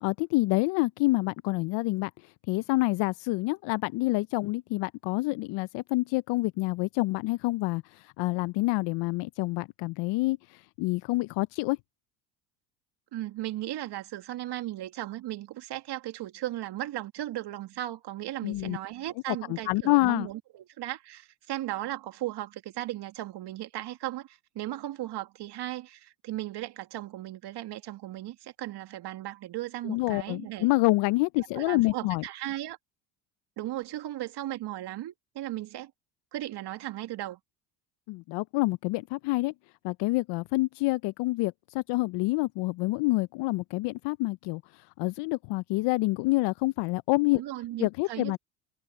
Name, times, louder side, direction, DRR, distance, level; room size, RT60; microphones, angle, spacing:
voice 1, 0.0-2.1 2.5-10.4 10.8-11.8 18.4-18.8 19.5-20.3 29.8-32.2 38.1-39.5 39.8-44.6 45.0-47.4 47.8-48.4, left 21 dB, 60° left, 0.8 m, -27 dB
voice 2, 13.1-30.7 31.5-32.8 33.6-35.9 36.3-37.4 47.3-48.4, right 14 dB, 55° right, 2.6 m, -36 dB
hypercardioid pair, 80°, 49 cm